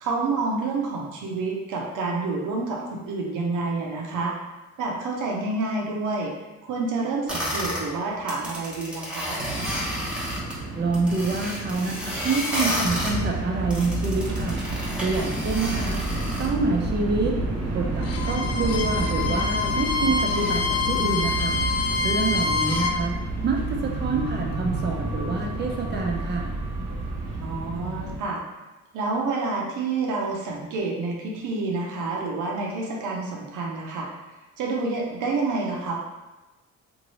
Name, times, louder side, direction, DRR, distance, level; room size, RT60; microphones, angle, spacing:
voice 1, 0.0-4.3 4.8-6.3 6.6-9.4 27.4-28.4 28.9-34.1 34.6-35.9, right 3 dB, 90° right, -2 dB, 0.7 m, -28 dB
sound 1, 7.3-7.8 8.2-10.5 10.9-13.1 13.7-16.5, equal, 5° right, 0.8 m, -31 dB
sound 2, 9.4-28.2, right 2 dB, 55° right, 0.9 m, -30 dB
voice 2, 10.8-14.6 15.0-16.0 16.4-17.4 17.7-21.6 22.0-23.2 23.4-26.5, right 3 dB, 35° right, 0 dB, 0.5 m, -27 dB
Bowed string instrument, 18.0-23.0, left 4 dB, 60° left, 0.4 m, -26 dB
2.7 x 2.6 x 3.0 m, 1.1 s
cardioid pair, 90°, 30 cm